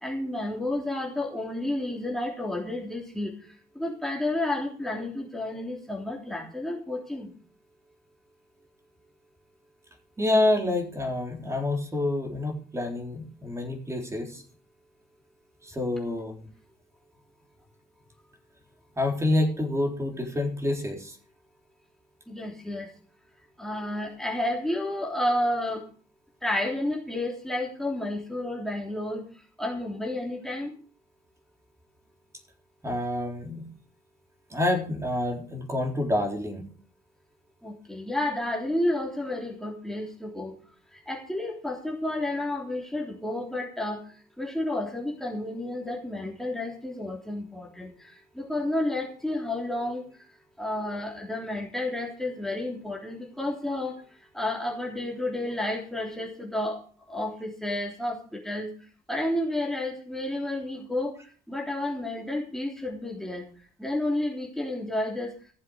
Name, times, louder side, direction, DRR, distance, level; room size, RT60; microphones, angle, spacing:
voice 1, 0.0-3.3 3.7-7.3 22.3-22.9 23.6-25.8 26.4-29.2 29.6-30.7 37.6-40.5 41.1-44.0 44.4-47.9 48.4-50.0 50.6-53.9 54.3-56.8 57.1-58.2 58.4-58.7 59.1-61.1 61.5-63.4 63.8-65.3, left 1 dB, ahead, -2 dB, 3.4 m, -31 dB
voice 2, 10.2-14.4 15.6-16.4 19.0-21.2 32.8-33.6 34.5-36.7, left 1 dB, 15° right, 2 dB, 3.9 m, -27 dB
15.5 x 7.4 x 6.4 m, 0.41 s
cardioid pair, 110°, 17 cm